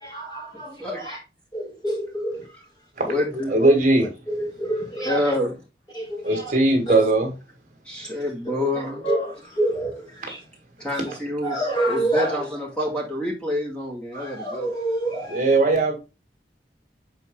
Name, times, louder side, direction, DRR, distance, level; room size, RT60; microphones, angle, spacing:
voice 1, 0.0-1.2 1.5-2.5 3.1-3.7 4.3-5.4 5.9-6.5 6.9-7.0 8.0-10.4 11.1-11.2 11.4-12.5 14.1-15.5, right 1 dB, 25° left, 2.5 m, -28 dB
voice 2, 0.5-1.0 3.0-3.6 5.0-5.5 7.9-9.1 10.8-11.6 11.9-14.7, left 1 dB, 5° left, 2.1 m, -27 dB
voice 3, 3.5-4.1 6.2-7.3 15.3-16.0, right 2 dB, 45° right, 2.0 m, -19 dB
6.7 x 4.3 x 3.7 m
head